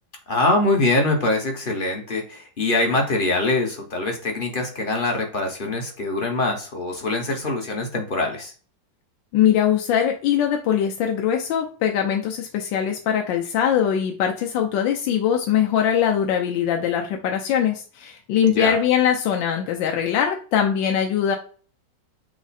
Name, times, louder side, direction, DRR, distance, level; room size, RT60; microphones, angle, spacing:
voice 1, 0.3-8.5 18.5-18.8, left 2 dB, 40° left, 2 dB, 0.7 m, -23 dB
voice 2, 9.3-21.4, left 9 dB, 80° left, 3 dB, 1.4 m, -22 dB
6.1 x 2.1 x 4.1 m, 0.40 s
omnidirectional pair, 2.0 m